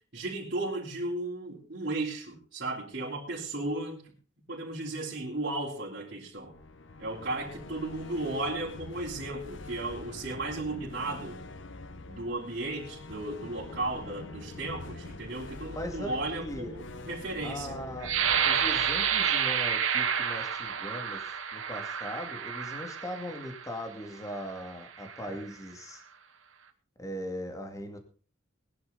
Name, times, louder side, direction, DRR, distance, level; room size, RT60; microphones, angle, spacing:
voice 1, 0.0-4.0 4.5-6.5 7.0-11.4 12.1-17.7, right 2 dB, 55° right, -7 dB, 4.0 m, -35 dB
sound 1, 6.3-20.3, left 2 dB, 65° left, 1.0 m, -45 dB
voice 2, 15.7-16.7 17.4-18.1 18.4-26.0 27.0-28.0, equal, 15° left, 5 dB, 2.4 m, -39 dB
sound 2, 18.0-23.7 24.3-24.5 25.0-25.4, right 7 dB, 90° right, 2.0 m, -29 dB
20.5 x 11.0 x 4.1 m, 0.39 s
head